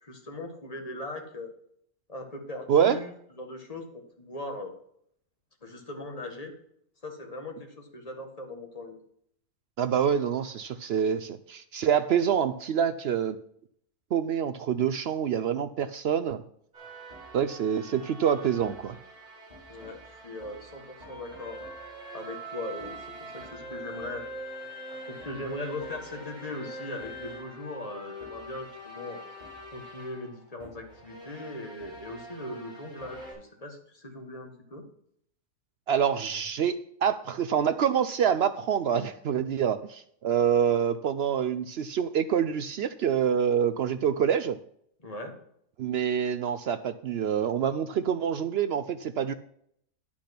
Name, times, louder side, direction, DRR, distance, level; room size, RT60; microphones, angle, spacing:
voice 1, 0.0-1.5 2.1-4.7 5.6-6.5 7.0-9.0 19.7-21.6 22.1-24.3 25.0-29.2 29.7-34.9 45.0-45.3, left 2 dB, 25° left, 3 dB, 1.7 m, -39 dB
voice 2, 2.7-3.0 9.8-13.4 14.1-16.4 17.3-19.0 35.9-44.6 45.8-49.3, right 8 dB, 75° right, 11 dB, 0.5 m, -26 dB
sound 1, 16.7-33.3, right 1 dB, 30° right, 4.3 m, -44 dB
10.0 x 6.1 x 5.9 m, 0.68 s
omnidirectional pair, 1.6 m